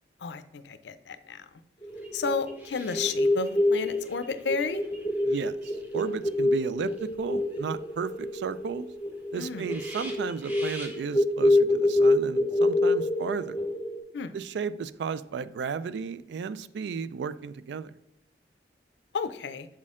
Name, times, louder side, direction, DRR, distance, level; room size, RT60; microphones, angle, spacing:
voice 1, 0.2-1.5 2.1-4.8 9.3-9.6 14.1-14.3 19.1-19.7, left 5 dB, 80° left, 12 dB, 0.4 m, -32 dB
sound 1, 1.8-14.0, left 2 dB, 25° left, 0.7 m, -26 dB
sound 2, 1.9-6.3 6.7-8.0 8.3-8.4 8.7-8.8 9.2-9.3 9.5-11.0, equal, 10° right, 0.8 m, -47 dB
voice 2, 5.3-8.9 9.3-13.6 14.3-17.9, right 6 dB, 80° right, 15 dB, 0.3 m, -34 dB
7.3 x 4.2 x 3.6 m, 0.81 s
head